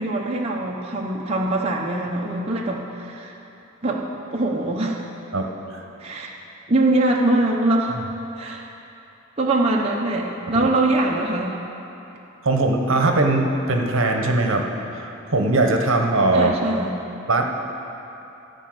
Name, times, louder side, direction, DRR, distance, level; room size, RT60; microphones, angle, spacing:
voice 1, 0.0-3.4 3.8-4.0 4.3-5.0 6.0-6.3 6.7-8.0 8.4-8.6 9.4-11.6 16.3-16.9, right 2 dB, 25° right, -3 dB, 0.8 m, -22 dB
voice 2, 5.3-5.8 8.4-8.5 10.5-10.7 12.4-16.5 17.3-17.4, right 2 dB, 60° right, 3 dB, 1.0 m, -21 dB
14.5 x 5.4 x 7.9 m, 2.9 s
head